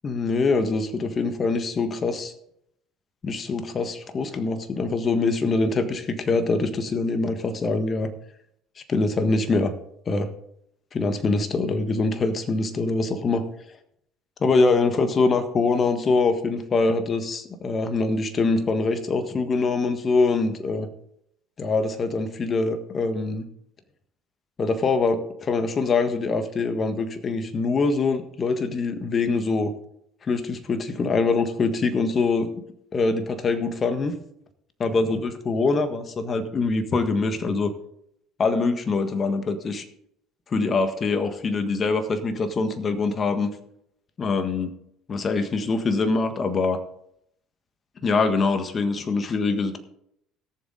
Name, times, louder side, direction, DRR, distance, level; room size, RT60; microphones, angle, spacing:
voice 1, 0.0-2.3 3.2-8.1 8.9-9.7 10.1-10.3 10.9-13.4 14.4-20.9 21.6-23.5 24.6-29.7 30.2-32.5 32.9-34.1 34.8-37.7 38.4-39.8 40.5-43.5 44.2-44.7 45.1-46.8 48.0-49.8, left 3 dB, 40° left, 9 dB, 1.6 m, -24 dB
17.0 x 7.4 x 3.9 m, 0.73 s
hypercardioid pair, 65°, 0 cm